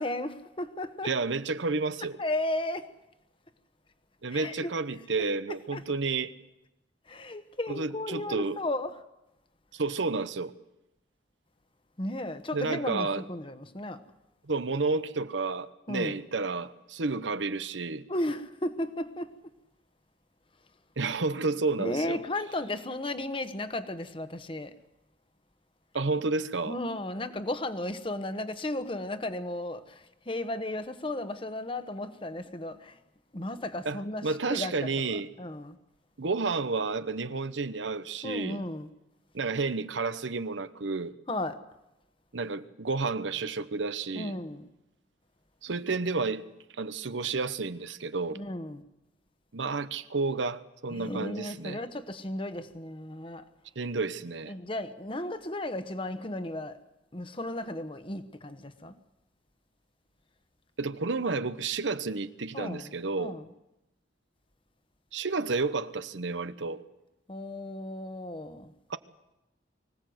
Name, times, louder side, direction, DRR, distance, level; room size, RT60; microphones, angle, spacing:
voice 1, 0.0-1.1 2.2-2.9 4.3-4.7 5.7-5.8 7.1-9.0 12.0-14.0 15.9-16.2 18.1-19.3 21.8-24.7 26.7-33.0 33.3-35.8 38.2-38.9 41.3-41.6 44.1-44.7 48.3-48.8 50.9-53.5 54.5-56.8 57.1-58.9 62.5-62.9 63.2-63.4 67.3-68.7, left 1 dB, 30° left, 1.2 m, -34 dB
voice 2, 1.0-2.2 4.2-6.3 7.7-8.6 9.7-10.5 12.5-13.2 14.4-18.0 21.0-22.2 25.9-26.8 33.8-35.3 36.2-38.6 39.3-41.1 42.3-44.4 45.6-46.5 46.8-48.4 49.5-51.8 53.8-54.5 60.8-63.4 65.1-66.8 68.9-69.0, right 3 dB, 85° right, 1.0 m, -31 dB
24.5 x 16.5 x 8.0 m
head